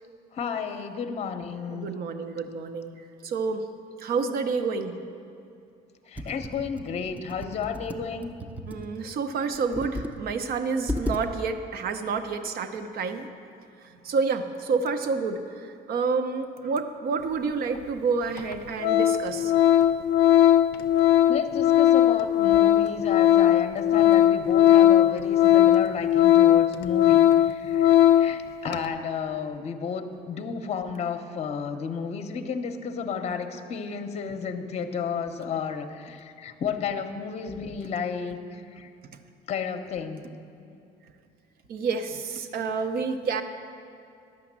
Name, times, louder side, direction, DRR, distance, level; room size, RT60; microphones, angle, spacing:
voice 1, 0.3-1.9 6.1-8.3 21.3-38.9 39.5-40.2, left 6 dB, 40° left, 8 dB, 0.7 m, -32 dB
voice 2, 1.7-2.9 3.2-3.6 4.0-5.0 8.7-13.3 13.8-19.5 41.7-43.4, right 4 dB, 65° right, 8 dB, 0.8 m, -29 dB
Computer keyboard, 6.2-8.9 9.5-10.2 10.5-10.6 10.9-11.2, equal, 10° right, 0.5 m, -34 dB
Organ, 17.8-17.9 18.4-18.5 18.8-28.4 28.7-28.9, left 11 dB, 75° left, 0.4 m, -19 dB
10.5 x 5.8 x 7.3 m, 2.5 s
cardioid pair, 110°, 17 cm